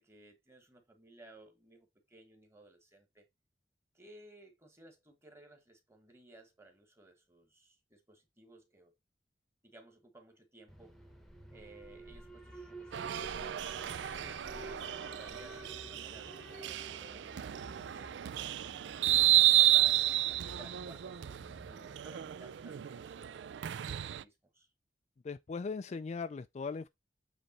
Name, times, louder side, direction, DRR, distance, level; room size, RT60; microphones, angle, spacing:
voice 1, 0.0-3.3 3.9-8.9 9.6-11.0 11.5-18.3 19.2-20.1 20.5-23.6 23.9-24.7, right 2 dB, 15° right, 1.4 m, -58 dB
Alarm, 10.7-22.7, equal, ahead, 0.9 m, -52 dB
sound 1, 12.9-24.2, right 14 dB, 80° right, 0.4 m, -31 dB
voice 2, 25.2-26.9, left 4 dB, 40° left, 0.3 m, -39 dB
8.1 x 3.4 x 4.2 m
head